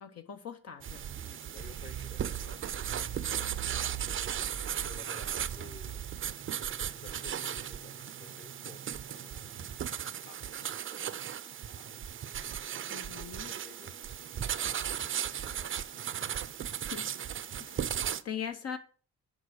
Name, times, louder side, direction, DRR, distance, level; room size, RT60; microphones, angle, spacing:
voice 1, 0.0-1.0 12.9-13.5 16.9-17.1 17.6-18.8, left 8 dB, 55° left, 0.8 m, -41 dB
sound 1, 0.8-18.2, right 9 dB, 45° right, 0.5 m, -36 dB
voice 2, 1.1-3.6 4.8-6.0 6.8-12.0 13.4-16.8, left 4 dB, 35° left, 1.3 m, -55 dB
6.3 x 4.8 x 6.5 m
cardioid pair, 90°, 30 cm